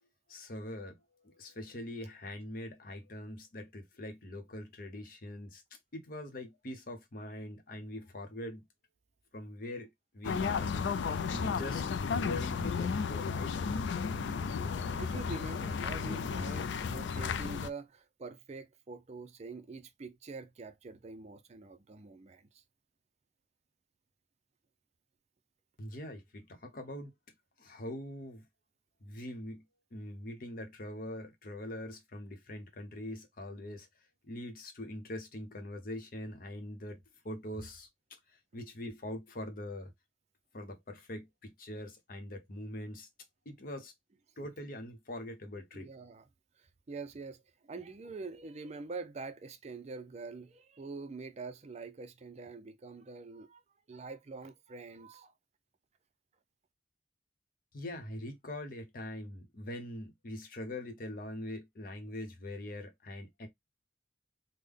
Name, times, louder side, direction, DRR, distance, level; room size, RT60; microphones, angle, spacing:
voice 1, 0.3-1.0 1.2-5.6 5.9-8.6 9.3-9.9 10.1-10.7 11.3-13.5 25.8-27.1 27.6-28.4 29.0-29.6 29.9-33.9 34.3-37.0 37.2-37.9 38.3-39.9 40.5-43.1 43.5-43.9 44.4-45.9 57.7-63.5, left 1 dB, 55° left, 0.8 m, -43 dB
sound 1, 10.2-17.7, left 5 dB, 90° left, 0.4 m, -33 dB
voice 2, 14.4-22.6 45.7-46.3 46.6-53.6 53.9-55.3, right 4 dB, 40° right, 0.4 m, -45 dB
3.6 x 2.1 x 3.4 m
head